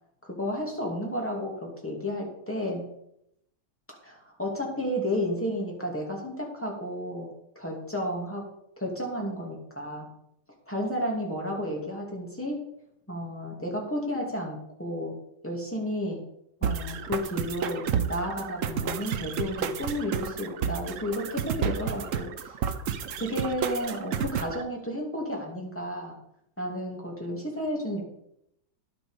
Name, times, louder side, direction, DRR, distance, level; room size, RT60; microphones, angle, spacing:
voice 1, 0.2-2.8 4.0-7.3 7.6-8.5 8.8-10.1 10.7-12.6 13.1-15.2 15.4-16.2 16.6-22.6 23.2-26.2 26.6-28.0, equal, 5° left, -1 dB, 2.4 m, -32 dB
sound 1, 16.6-24.6, right 7 dB, 60° right, 0.8 m, -31 dB
11.0 x 6.8 x 5.1 m, 0.77 s
omnidirectional pair, 2.0 m